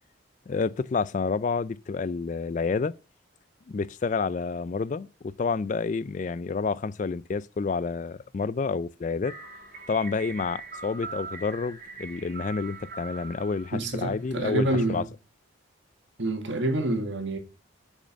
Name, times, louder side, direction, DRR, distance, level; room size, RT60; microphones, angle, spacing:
voice 1, 0.5-2.9 3.7-9.3 9.9-15.0, left 4 dB, 40° left, 0.3 m, -29 dB
sound 1, 9.2-14.6, right 4 dB, 45° right, 3.2 m, -42 dB
voice 2, 13.7-15.1 16.2-17.4, right 2 dB, 65° right, 1.8 m, -27 dB
6.6 x 6.4 x 6.4 m
head